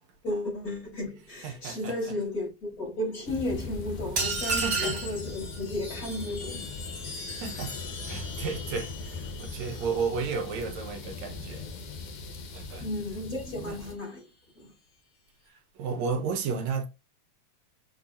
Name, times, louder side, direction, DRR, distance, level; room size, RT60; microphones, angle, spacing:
voice 1, 0.2-6.8 12.8-14.3 14.6-14.7, left 1 dB, 25° left, 4.4 m, -34 dB
voice 2, 1.4-2.1 4.4-5.0 7.4-11.7 12.5-12.9 13.6-13.8 15.5-16.9, right 5 dB, 70° right, 2.1 m, -33 dB
sound 1, 3.3-14.0, left 3 dB, 75° left, 2.7 m, -40 dB
sound 2, 4.2-5.2, right 4 dB, 40° right, 3.6 m, -28 dB
Chime, 4.6-12.3 13.5-14.1, left 3 dB, 55° left, 3.5 m, -44 dB
7.0 x 5.1 x 2.8 m
omnidirectional pair, 3.6 m